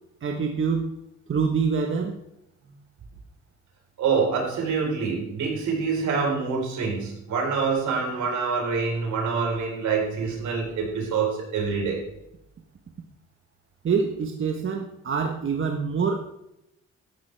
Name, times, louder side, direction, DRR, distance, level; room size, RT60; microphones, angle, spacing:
voice 1, 0.2-0.9 1.3-2.2 13.8-16.3, right 5 dB, 40° right, 3 dB, 1.3 m, -25 dB
voice 2, 4.0-12.0, right 5 dB, 70° right, 0 dB, 4.3 m, -26 dB
13.5 x 10.5 x 3.4 m, 0.85 s
cardioid pair, 90°, 30 cm